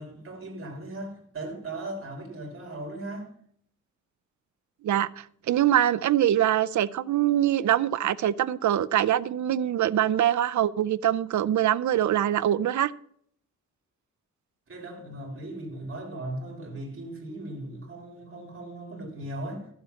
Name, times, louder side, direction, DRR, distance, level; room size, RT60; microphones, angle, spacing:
voice 1, 0.0-3.3 14.7-19.7, right 1 dB, 40° right, 3.4 m, -38 dB
voice 2, 4.8-12.9, right 11 dB, 65° right, 0.5 m, -24 dB
13.5 x 7.4 x 5.8 m
wide cardioid pair, 165°, 31 cm